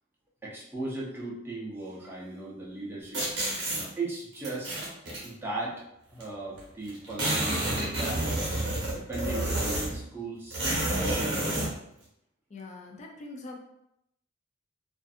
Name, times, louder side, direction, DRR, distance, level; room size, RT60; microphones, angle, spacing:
voice 1, 0.4-3.2 4.0-4.8 5.2-5.8 6.1-8.4 8.9-10.6 10.9-11.6, right 2 dB, 10° right, -6 dB, 0.6 m, -37 dB
sound 1, 3.1-3.8 4.4-5.3 6.2-6.3 6.5-6.6 6.9-10.0 10.5-11.7, right 1 dB, 60° right, 0.9 m, -29 dB
voice 2, 12.5-13.6, left 3 dB, 35° left, 0 dB, 0.4 m, -43 dB
2.5 x 2.5 x 2.4 m, 0.79 s
head